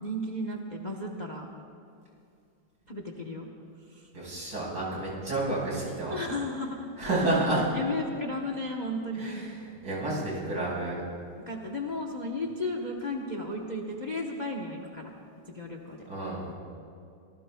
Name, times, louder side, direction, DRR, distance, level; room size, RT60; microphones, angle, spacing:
voice 1, 0.0-1.5 2.9-3.5 3.9-4.1 6.1-6.9 7.2-7.3 7.5-9.5 11.5-15.1 15.5-16.1, left 1 dB, 30° left, 1 dB, 0.9 m, -34 dB
voice 2, 4.1-6.2 7.0-7.7 9.1-9.5 9.8-11.0 16.1-16.5, right 2 dB, 85° right, -5 dB, 5.6 m, -30 dB
26.0 x 18.5 x 2.3 m, 2.5 s
omnidirectional pair, 2.1 m